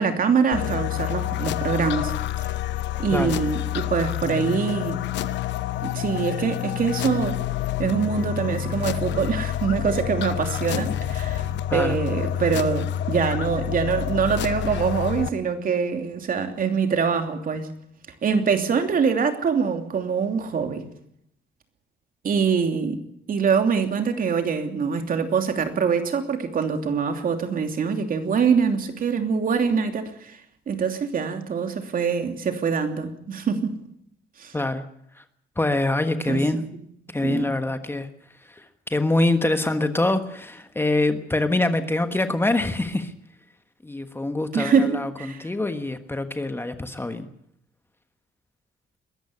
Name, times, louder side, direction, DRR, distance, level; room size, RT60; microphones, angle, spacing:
voice 1, 0.0-2.1 3.0-5.0 5.8-7.4 7.8-11.5 11.7-17.7 18.2-20.8 22.2-23.0 23.3-30.4 30.7-33.7 34.4-34.5 36.3-36.4 37.2-37.5 44.5-45.5, right 6 dB, 50° right, 6 dB, 2.9 m, -24 dB
sound 1, 0.5-15.3, left 12 dB, 90° left, 0.9 m, -28 dB
voice 2, 34.5-34.8 35.1-35.2 35.6-36.6 37.1-38.1 38.5-43.1 43.8-47.3, left 2 dB, 10° left, 8 dB, 1.3 m, -25 dB
22.0 x 14.0 x 9.8 m, 0.72 s
cardioid pair, 120°, 18 cm